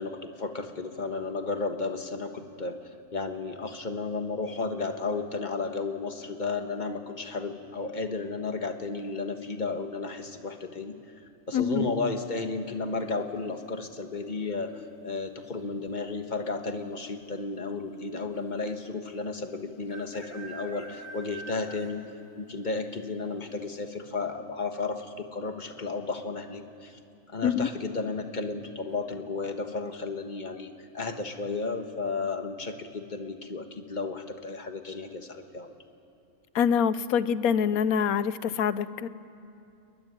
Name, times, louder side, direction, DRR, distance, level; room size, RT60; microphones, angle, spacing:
voice 1, 0.0-22.0 22.4-27.0 27.3-35.7, left 3 dB, 35° left, 6 dB, 1.5 m, -33 dB
voice 2, 11.5-11.9 27.4-27.7 36.5-39.1, left 7 dB, 80° left, 15 dB, 1.2 m, -25 dB
sound 1, 12.3-12.8 14.6-15.0 15.3-15.4 15.6-16.1 16.9-17.0 17.2-17.3 18.9-19.0 19.9-22.2 22.5-22.6 23.1-23.2 23.7-23.8, right 3 dB, 15° left, 2.6 m, -45 dB
22.0 x 21.5 x 9.8 m, 2.7 s
omnidirectional pair, 1.5 m